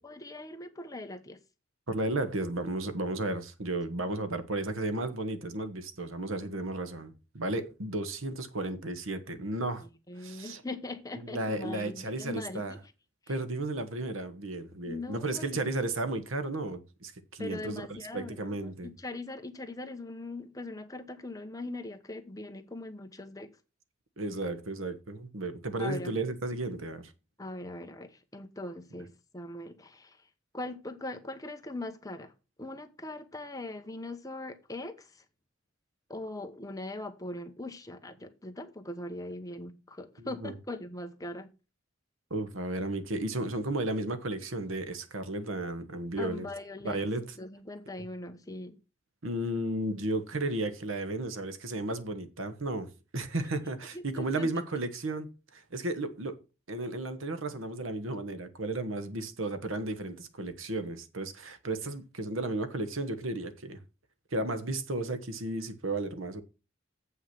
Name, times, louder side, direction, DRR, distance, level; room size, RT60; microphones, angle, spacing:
voice 1, 0.0-1.4 9.8-12.8 13.3-13.4 14.9-15.6 17.4-23.5 25.8-26.2 27.4-30.3 30.5-32.3 32.6-35.2 36.1-41.5 46.2-47.0 47.4-48.8 53.9-54.5, left 2 dB, 15° left, 1.0 m, -41 dB
voice 2, 1.9-9.9 10.2-10.6 11.3-12.7 13.3-17.8 18.1-18.9 24.2-27.1 40.2-40.5 42.3-46.5 46.8-47.2 49.2-56.4 56.7-63.8 64.3-66.4, right 2 dB, 85° right, 1.2 m, -34 dB
8.0 x 5.7 x 5.9 m
head